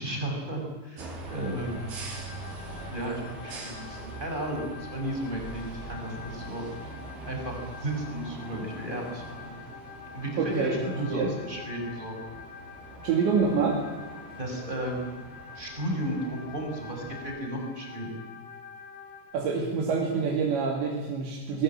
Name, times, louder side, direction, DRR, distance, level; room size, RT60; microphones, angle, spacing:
voice 1, 0.0-1.9 2.9-6.9 7.3-9.5 10.1-12.2 14.4-15.1 15.5-18.2, right 1 dB, 10° right, 1 dB, 5.9 m, -34 dB
sound 1, 1.0-17.3, right 3 dB, 65° right, 6.3 m, -43 dB
sound 2, 1.3-19.3, left 6 dB, 75° left, 6.6 m, -46 dB
voice 2, 10.4-10.8 11.1-11.3 13.0-13.8 19.3-21.6, right 5 dB, 85° right, -1 dB, 5.1 m, -26 dB
23.0 x 21.5 x 9.0 m, 1.2 s
omnidirectional pair, 5.0 m